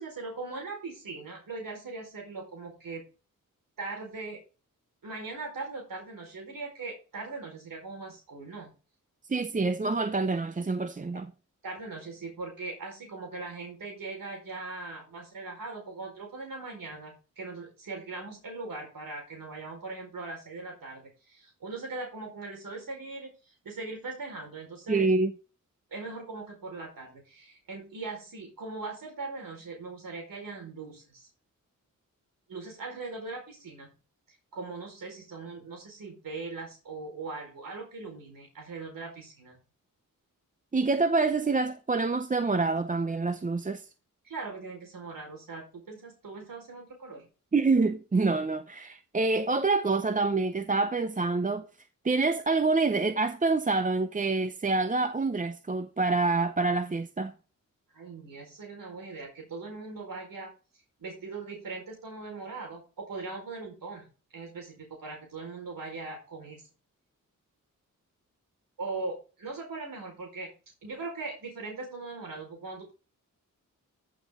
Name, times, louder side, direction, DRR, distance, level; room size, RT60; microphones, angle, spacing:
voice 1, 0.0-3.0 3.8-4.4 5.0-8.7 11.1-11.2 11.6-25.1 25.9-31.3 32.5-33.9 34.5-39.6 44.2-47.3 57.9-60.5 61.0-66.6 68.8-70.5 70.8-72.9, right 3 dB, 80° right, 4.7 m, -40 dB
voice 2, 9.3-11.3 24.9-25.3 40.7-43.9 47.5-51.7 52.0-57.3, right 3 dB, 25° right, 0.6 m, -26 dB
14.5 x 6.3 x 3.7 m
wide cardioid pair, 105°, 33 cm